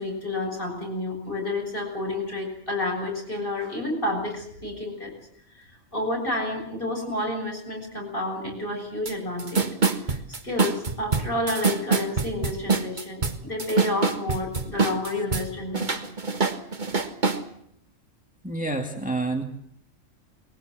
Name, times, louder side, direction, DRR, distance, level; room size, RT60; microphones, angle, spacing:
voice 1, 0.0-5.1 5.9-9.7 10.1-10.2 10.4-16.0, left 1 dB, 40° left, 1 dB, 7.6 m, -30 dB
sound 1, 9.1-9.2 9.4-15.5 15.7-17.4, right 4 dB, 35° right, 1.7 m, -24 dB
voice 2, 18.4-19.4, right 2 dB, 5° right, 3 dB, 2.2 m, -28 dB
23.0 x 21.5 x 7.8 m, 0.70 s
omnidirectional pair, 1.4 m